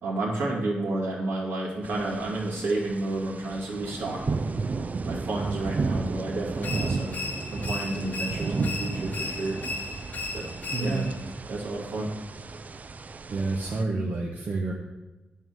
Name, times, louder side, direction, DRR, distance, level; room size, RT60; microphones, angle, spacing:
voice 1, 0.0-4.4 5.1-7.2 7.5-9.6 10.3-10.5 10.8-11.0 11.5-12.1, right 2 dB, 75° right, -3 dB, 2.4 m, -31 dB
sound 1, 1.8-13.8, right 4 dB, 40° right, 0.4 m, -33 dB
sound 2, 6.6-11.2, left 3 dB, 45° left, 0.9 m, -36 dB
voice 2, 10.7-11.1 13.3-14.7, right 3 dB, 60° right, -2 dB, 1.1 m, -29 dB
8.8 x 3.8 x 6.3 m, 1.1 s
cardioid pair, 70°, 4 cm